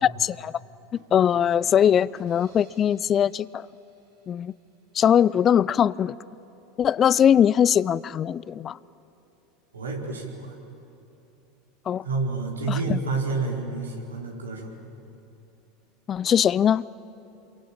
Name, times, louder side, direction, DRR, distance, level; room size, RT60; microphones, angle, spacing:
voice 1, 0.0-0.5 1.1-3.6 4.3-4.5 4.9-6.2 6.8-8.8 11.9-12.1 12.7-13.0 16.1-16.8, left 9 dB, 35° left, 0.5 m, -21 dB
sound 1, 1.0-4.7, right 5 dB, 65° right, 4.9 m, -55 dB
voice 2, 9.7-10.6 12.0-14.7, right 3 dB, 90° right, 4.4 m, -29 dB
28.0 x 23.0 x 8.8 m
hypercardioid pair, 85°, 0 cm